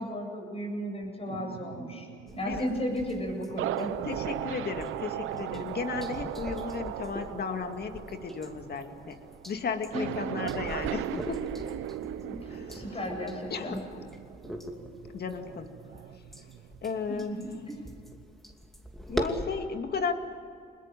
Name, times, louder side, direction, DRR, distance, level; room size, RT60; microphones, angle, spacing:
voice 1, 0.0-2.1 2.3-3.9 9.9-10.4 12.2-13.8 17.1-17.8, equal, 30° left, 2 dB, 7.9 m, -35 dB
sound 1, 1.3-17.1 17.5-18.2, right 13 dB, 85° right, 0.7 m, -38 dB
sound 2, 2.3-19.5, equal, ahead, 2.7 m, -42 dB
voice 2, 4.0-9.2 9.5-11.5 12.5-12.6 13.5-14.0 15.1-15.7 16.8-17.3 19.1-20.1, left 5 dB, 55° left, 6 dB, 2.4 m, -34 dB
25.5 x 20.5 x 7.7 m, 2.4 s
cardioid pair, 90°, 20 cm